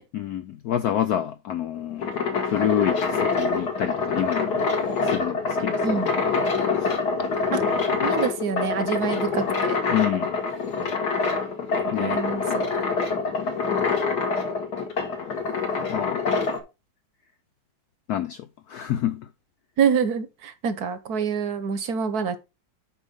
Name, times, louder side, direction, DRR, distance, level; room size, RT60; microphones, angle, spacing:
voice 1, 0.1-4.7 5.0-6.4 6.8-7.0 8.0-8.1 9.9-10.3 11.9-12.2 15.9-16.2 18.1-19.3, left 11 dB, 80° left, 0.8 m, -28 dB
sound 1, 1.8-16.6, left 4 dB, 55° left, 2.0 m, -25 dB
voice 2, 8.0-9.8 12.0-12.7 19.8-22.4, right 6 dB, 55° right, 1.2 m, -26 dB
7.2 x 5.3 x 5.3 m
omnidirectional pair, 2.2 m